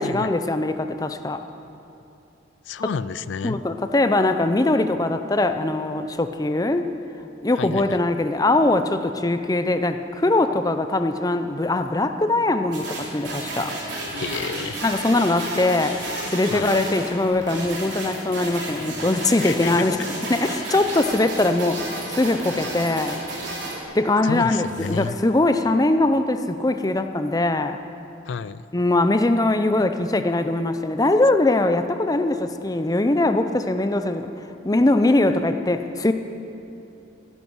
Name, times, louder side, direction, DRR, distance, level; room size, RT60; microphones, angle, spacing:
voice 1, 0.0-1.4 3.4-6.9 7.4-13.8 14.8-16.0 16.3-20.0 20.3-23.2 23.9-27.8 28.7-34.3 34.6-36.1, left 2 dB, 20° left, 8 dB, 0.6 m, -21 dB
voice 2, 2.7-3.6 7.6-8.0 14.1-14.8 16.5-16.8 19.4-19.8 24.2-25.2 28.3-28.7, left 6 dB, 75° left, 17 dB, 0.4 m, -30 dB
sound 1, 12.7-23.8, right 2 dB, 65° right, 3.7 m, -32 dB
sound 2, 15.4-17.1 18.9-20.7 24.1-25.4, left 3 dB, 40° left, 2.5 m, -45 dB
16.0 x 11.0 x 6.2 m, 2.7 s
head